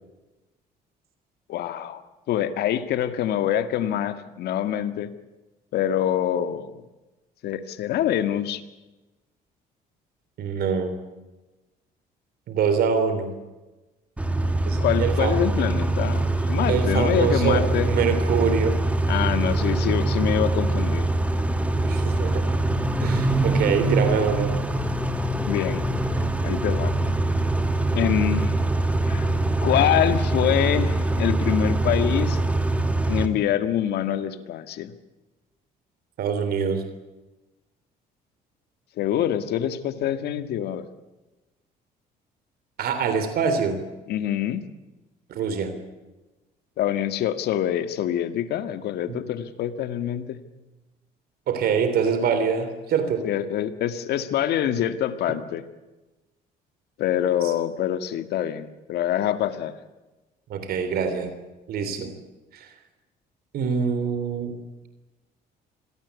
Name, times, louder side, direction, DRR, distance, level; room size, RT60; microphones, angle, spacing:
voice 1, 1.5-2.0 2.3-5.1 5.7-6.8 7.4-8.6 14.8-17.9 19.1-21.1 25.5-25.8 26.4-26.9 27.9-28.5 29.0-29.3 29.6-32.4 33.1-34.9 39.0-40.9 44.1-44.6 46.8-50.4 53.2-55.6 57.0-59.7, left 11 dB, 75° left, 10 dB, 1.9 m, -25 dB
voice 2, 10.4-10.9 12.5-13.3 14.7-15.4 16.7-18.8 21.8-22.5 23.0-24.5 36.2-36.8 42.8-43.8 45.3-45.7 49.1-49.2 51.5-53.3 57.4-57.5 60.5-61.3 61.7-62.1 62.5-62.7 63.5-64.5, right 6 dB, 65° right, 9 dB, 3.4 m, -25 dB
Car / Idling / Accelerating revving vroom, 14.2-33.3, right 2 dB, 10° right, 2.4 m, -23 dB
26.5 x 18.0 x 8.3 m, 1.1 s
cardioid pair, 110°, 17 cm